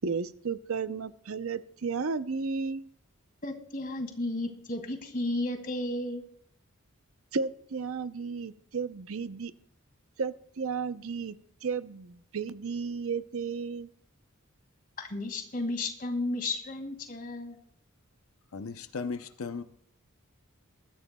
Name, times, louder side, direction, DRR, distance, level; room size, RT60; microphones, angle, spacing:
voice 1, 0.0-2.8 7.3-9.5 10.2-13.9, right 5 dB, 70° right, 12 dB, 0.6 m, -33 dB
voice 2, 3.4-6.2 15.0-17.6, left 2 dB, 45° left, 5 dB, 2.2 m, -33 dB
voice 3, 18.5-19.6, left 4 dB, 70° left, 9 dB, 0.6 m, -36 dB
22.0 x 13.5 x 2.3 m, 0.64 s
head